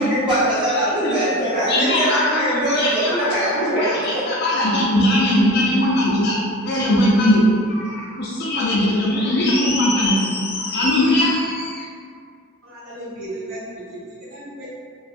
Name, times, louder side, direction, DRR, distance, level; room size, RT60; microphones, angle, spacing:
voice 1, 0.0-4.3, equal, 20° right, -13 dB, 0.9 m, -21 dB
voice 2, 1.7-7.4 7.7-11.8, left 1 dB, 50° left, -6 dB, 0.4 m, -20 dB
voice 3, 12.6-14.7, right 1 dB, 65° right, -9 dB, 0.6 m, -35 dB
2.5 x 2.3 x 2.4 m, 2.2 s
head